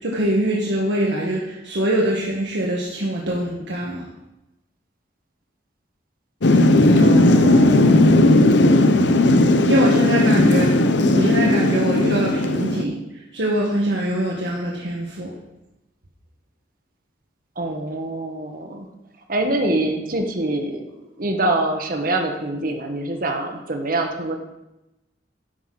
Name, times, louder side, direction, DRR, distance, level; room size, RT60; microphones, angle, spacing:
voice 1, 0.0-4.0 9.6-10.7 11.1-13.0 13.3-15.3, right 1 dB, 75° right, -3 dB, 1.5 m, -23 dB
Thunder / Rain, 6.4-12.8, left 1 dB, 80° left, 0.8 m, -16 dB
voice 2, 7.0-8.1 17.6-18.9 19.3-20.9 21.2-24.4, right 2 dB, 50° right, 4 dB, 1.3 m, -25 dB
11.5 x 5.8 x 5.9 m, 0.96 s
head